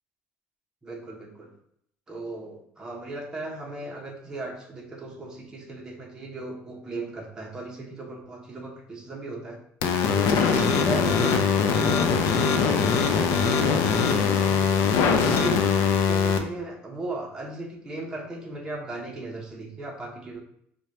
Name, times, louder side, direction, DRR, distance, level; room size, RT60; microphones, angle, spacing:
voice 1, 0.8-1.5 2.1-9.6 10.1-14.7 15.1-20.4, right 2 dB, 15° right, -2 dB, 0.7 m, -37 dB
sound 1, 9.8-16.4, left 6 dB, 80° left, 0.4 m, -22 dB
4.8 x 2.1 x 2.8 m, 0.72 s
cardioid pair, 155°, 5 cm